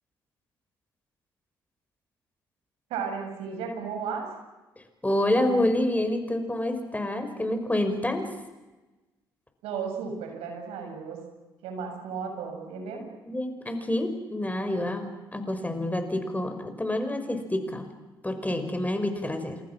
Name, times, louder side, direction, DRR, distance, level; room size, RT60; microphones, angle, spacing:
voice 1, 2.9-4.3 9.6-11.2 11.6-13.0, right 6 dB, 75° right, 3 dB, 7.1 m, -34 dB
voice 2, 5.0-8.3 13.2-17.9 18.2-19.6, left 1 dB, 15° left, 6 dB, 6.2 m, -28 dB
29.5 x 27.5 x 6.3 m, 1.1 s
hypercardioid pair, 45°, 10 cm